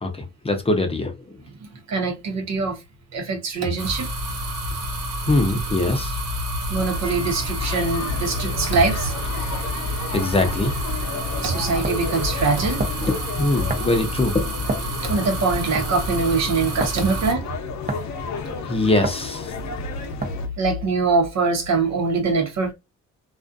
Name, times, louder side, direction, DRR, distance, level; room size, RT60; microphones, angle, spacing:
voice 1, 0.0-1.1 5.3-6.1 10.1-10.7 13.0-14.5 18.7-19.5, left 2 dB, 20° left, 0.6 m, -22 dB
voice 2, 1.9-2.8 3.1-4.1 6.7-9.1 11.4-12.8 15.0-17.5 20.6-22.7, right 4 dB, 65° right, 0.9 m, -23 dB
sound 1, 3.8-17.3, equal, 90° right, 1.3 m, -28 dB
sound 2, 6.8-20.5, left 5 dB, 65° left, 0.7 m, -33 dB
sound 3, 11.8-12.1 12.8-13.1 13.7-14.0 14.7-15.0 15.8-16.0 16.8-17.0 17.9-18.2 19.0-19.3 20.2-20.5, right 3 dB, 30° right, 0.7 m, -28 dB
2.4 x 2.4 x 2.5 m
cardioid pair, 90°, 30 cm